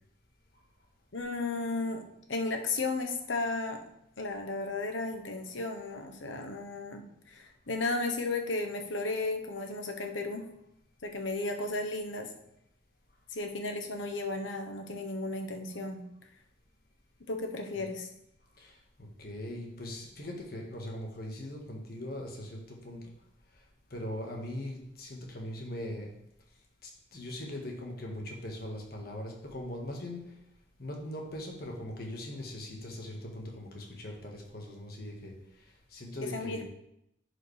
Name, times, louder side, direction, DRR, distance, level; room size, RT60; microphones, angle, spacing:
voice 1, 1.1-2.0 2.3-3.8 4.2-10.4 11.0-12.3 13.3-16.0 17.3-18.1 36.3-36.6, left 3 dB, 85° left, 4 dB, 1.0 m, -34 dB
voice 2, 18.6-23.1 23.9-26.1 26.8-30.2 30.8-35.3 35.9-36.6, left 1 dB, 50° left, 0 dB, 1.6 m, -40 dB
11.0 x 4.9 x 3.3 m, 0.79 s
head